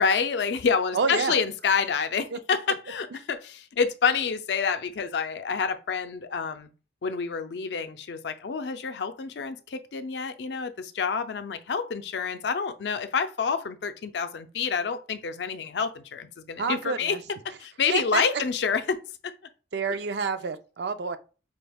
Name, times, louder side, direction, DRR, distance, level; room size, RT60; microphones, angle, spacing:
voice 1, 0.0-6.7 7.0-17.2 17.6-19.0 19.2-19.3 19.9-20.0, left 6 dB, 80° left, 0.5 m, -28 dB
voice 2, 0.9-1.4 16.6-17.2 17.9-18.2 19.7-21.2, right 5 dB, 75° right, 0.5 m, -28 dB
5.0 x 3.4 x 2.3 m
head